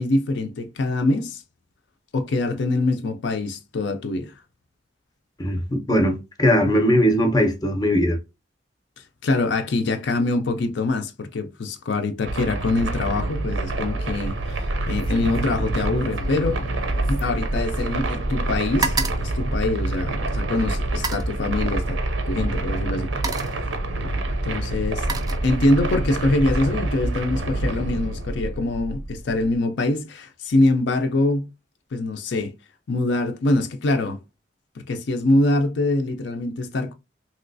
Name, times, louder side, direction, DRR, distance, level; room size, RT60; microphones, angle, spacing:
voice 1, 0.0-1.4 2.1-4.3 9.0-16.6 17.1-22.0 22.3-23.1 24.4-25.1 25.4-31.5 31.9-32.5 32.9-34.2 34.8-36.9, left 2 dB, 65° left, 0.4 m, -24 dB
voice 2, 5.4-8.2, equal, 20° left, 0.6 m, -20 dB
sound 1, 12.2-29.5, right 2 dB, 85° right, 0.6 m, -27 dB
sound 2, 14.3-14.7 15.0-18.1 18.4-20.3 20.9-21.4 22.4-22.6 23.0-23.7 24.5-25.9 26.3-26.7, right 4 dB, 20° right, 0.3 m, -33 dB
3.0 x 2.9 x 2.6 m
head